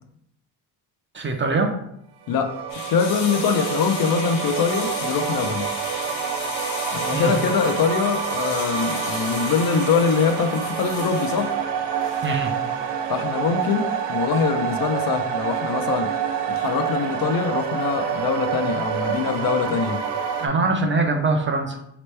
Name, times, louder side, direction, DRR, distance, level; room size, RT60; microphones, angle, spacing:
voice 1, 1.1-1.7 7.1-7.3 12.2-12.5 20.4-21.8, right 3 dB, 30° right, 3 dB, 0.6 m, -22 dB
sound 1, 2.3-20.5, right 8 dB, 75° right, 0.6 m, -27 dB
sound 2, 2.7-12.7, left 5 dB, 80° left, 1.1 m, -35 dB
voice 2, 2.8-5.7 6.9-11.6 13.1-16.1 16.5-20.0, left 6 dB, 55° left, 7 dB, 0.6 m, -23 dB
4.2 x 3.0 x 3.2 m, 0.75 s
cardioid pair, 110°, 42 cm